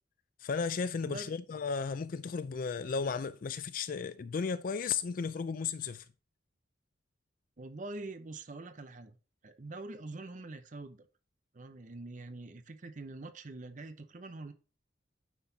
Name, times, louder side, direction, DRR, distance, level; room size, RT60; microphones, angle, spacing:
voice 1, 0.4-6.0, left 5 dB, 45° left, 0.4 m, -34 dB
voice 2, 7.6-9.2 9.4-11.1 11.5-14.5, right 2 dB, 40° right, 0.7 m, -44 dB
9.5 x 5.9 x 2.7 m
head